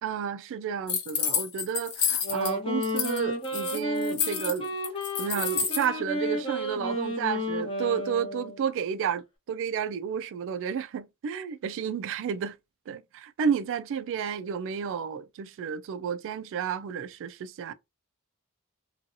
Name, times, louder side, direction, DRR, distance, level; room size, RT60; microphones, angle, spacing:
voice 1, 0.0-4.7 5.2-12.5 12.9-17.7, right 7 dB, 60° right, 0.3 m, -31 dB
sound 1, 0.9-2.5 2.8-3.2 3.4-5.9, left 7 dB, 85° left, 0.8 m, -29 dB
Wind instrument woodwind instrument, 2.1-8.7, left 1 dB, 25° left, 0.9 m, -32 dB
2.7 x 2.3 x 2.5 m
head